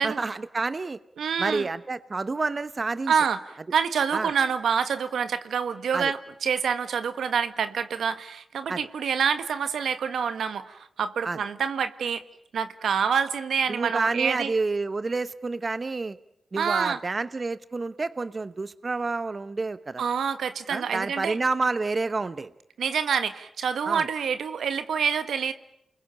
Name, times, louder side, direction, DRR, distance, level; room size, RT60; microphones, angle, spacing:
voice 1, 0.0-1.0 1.4-3.1 4.1-4.3 5.9-6.1 8.7-8.8 11.2-11.4 13.7-16.2 16.5-20.0 20.7-22.5 23.9-24.0, right 3 dB, 45° right, 13 dB, 1.0 m, -29 dB
voice 2, 1.2-1.7 3.1-12.2 12.5-14.5 16.5-17.0 20.0-21.4 22.8-25.5, right 7 dB, 85° right, 10 dB, 1.5 m, -27 dB
29.0 x 21.5 x 8.8 m, 0.77 s
cardioid pair, 50°, 0 cm